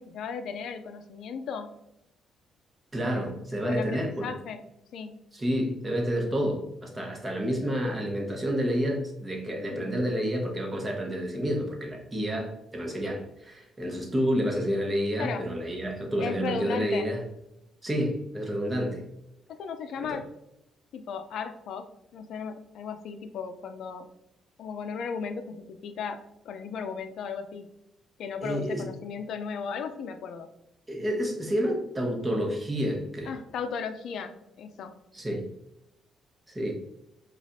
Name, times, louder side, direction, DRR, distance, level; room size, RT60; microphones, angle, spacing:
voice 1, 0.0-1.7 3.6-4.6 4.9-5.1 9.7-9.9 15.2-15.5 16.2-17.1 19.5-20.3 20.9-24.1 24.6-27.7 28.2-30.5 33.2-35.0, left 6 dB, 75° left, 8 dB, 0.4 m, -36 dB
voice 2, 2.9-4.3 5.3-17.2 17.8-19.0 20.0-20.2 28.4-28.9 30.9-33.3 35.1-35.4 36.5-36.7, equal, 20° right, 1 dB, 1.1 m, -29 dB
5.0 x 2.4 x 2.6 m, 0.86 s
cardioid pair, 90°, 0 cm